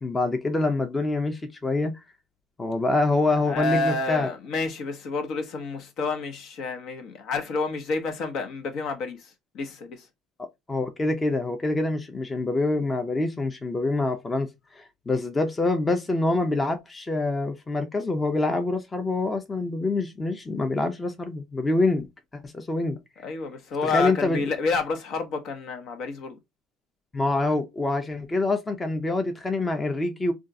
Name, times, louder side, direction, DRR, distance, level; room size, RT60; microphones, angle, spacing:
voice 1, 0.0-1.9 2.6-4.3 10.4-14.5 14.7-22.1 22.3-23.0 23.8-24.4 27.1-30.3, left 2 dB, 20° left, 0.7 m, -26 dB
voice 2, 3.5-10.1 23.2-26.4, left 4 dB, 65° left, 0.9 m, -29 dB
3.5 x 2.4 x 2.6 m
cardioid pair, 105°, 0 cm